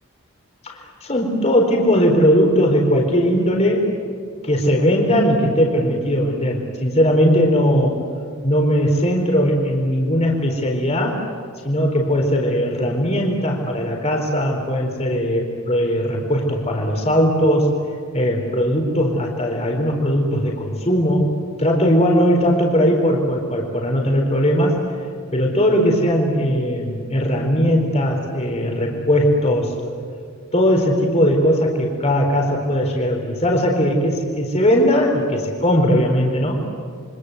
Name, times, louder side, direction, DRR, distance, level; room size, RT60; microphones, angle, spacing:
voice 1, 0.6-3.8 4.4-8.0 8.4-11.2 11.6-17.7 18.1-21.3 21.6-24.8 25.3-29.7 30.5-36.6, equal, 30° left, 1 dB, 4.2 m, -19 dB
28.0 x 25.0 x 8.1 m, 2.1 s
head